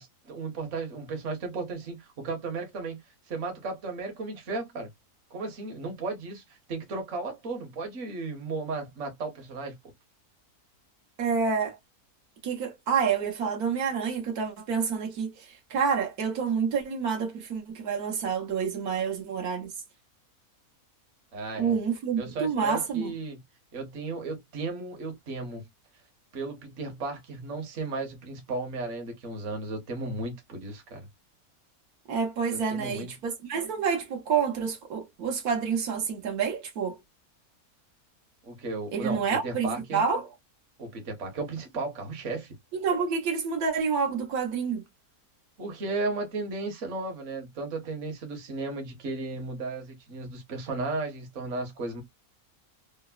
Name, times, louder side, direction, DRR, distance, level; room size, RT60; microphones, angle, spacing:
voice 1, 0.0-3.0 3.3-4.9 5.3-9.7 21.3-21.7 22.2-23.4 23.7-25.6 26.3-31.1 32.5-33.1 38.4-40.0 40.8-42.5 45.6-52.0, right 3 dB, 60° right, 1.2 m, -35 dB
voice 2, 11.2-11.8 12.4-19.7 21.6-23.1 32.1-37.0 38.9-40.3 42.7-44.8, right 6 dB, 85° right, 1.4 m, -28 dB
3.3 x 2.0 x 2.2 m
omnidirectional pair, 1.6 m